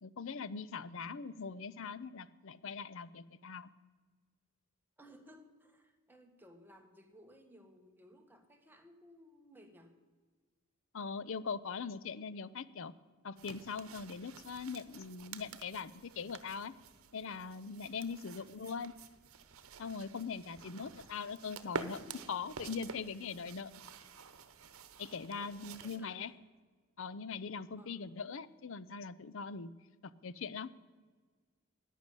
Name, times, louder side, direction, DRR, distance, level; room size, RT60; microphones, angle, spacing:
voice 1, 0.0-3.7 10.9-12.9 13.2-16.7 17.1-18.9 19.8-23.7 25.0-26.3 27.0-29.7 30.0-30.7, left 5 dB, 60° left, 16 dB, 0.6 m, -41 dB
voice 2, 5.0-9.9 25.4-26.3 27.7-28.0, equal, 10° right, 4 dB, 1.3 m, -60 dB
sound 1, 13.4-26.0, right 4 dB, 75° right, 1.0 m, -49 dB
11.5 x 10.0 x 9.0 m, 1.5 s
head